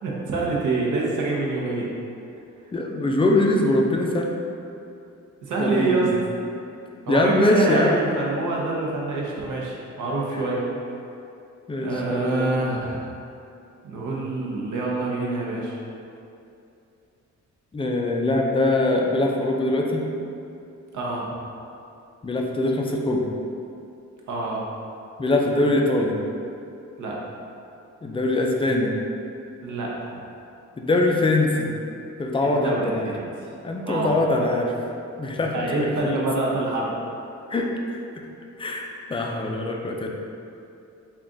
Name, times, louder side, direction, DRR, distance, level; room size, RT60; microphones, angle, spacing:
voice 1, 0.0-1.9 5.4-6.1 7.1-10.6 11.8-13.1 13.8-15.8 20.9-21.3 24.3-24.6 27.0-27.1 29.6-30.1 32.4-33.2 33.9-34.2 35.5-36.9, right 2 dB, 80° right, -3 dB, 0.7 m, -26 dB
voice 2, 2.7-4.3 5.6-6.2 7.1-8.0 11.7-12.9 17.7-20.0 22.2-23.2 25.2-26.2 28.0-29.0 30.8-31.7 32.2-33.1 33.6-34.7 35.2-36.1 37.5-38.0 38.6-40.1, left 2 dB, 20° left, 0 dB, 0.4 m, -23 dB
3.6 x 2.3 x 3.8 m, 2.6 s
cardioid pair, 95°, 30 cm